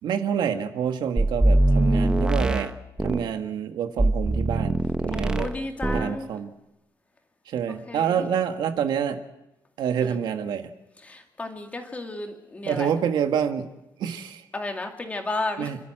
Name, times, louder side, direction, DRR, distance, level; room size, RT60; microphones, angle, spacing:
voice 1, 0.0-2.7 3.0-5.5 5.9-6.5 7.5-9.2 9.8-10.7 12.6-13.7 14.0-14.4 15.6-15.8, right 8 dB, 75° right, 7 dB, 1.7 m, -27 dB
sound 1, 1.2-3.3 4.0-5.6 5.8-6.2, right 1 dB, 10° right, 0.8 m, -22 dB
voice 2, 5.1-6.3 7.7-8.3 10.0-10.2 11.0-12.9 14.5-15.7, left 2 dB, 20° left, 3 dB, 2.4 m, -33 dB
29.5 x 12.5 x 7.6 m, 0.92 s
cardioid pair, 165°, 8 cm